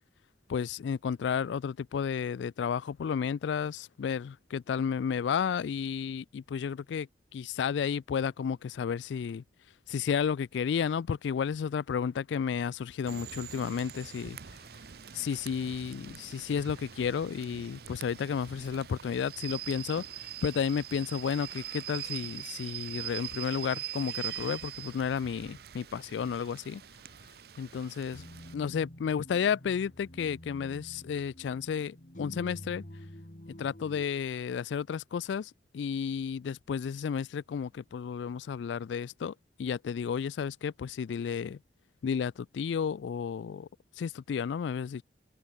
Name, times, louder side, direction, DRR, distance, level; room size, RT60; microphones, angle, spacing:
voice 1, 0.5-9.4 9.9-14.4 15.1-26.8 27.6-28.2 28.5-32.8 33.6-39.3 39.6-41.6 42.0-43.7 44.0-45.0, left 7 dB, 80° left, 0.3 m, -32 dB
Rain / Train, 13.1-28.5, right 11 dB, 60° right, 0.7 m, -43 dB
sound 1, 28.1-34.1, left 1 dB, 45° left, 2.7 m, -48 dB
head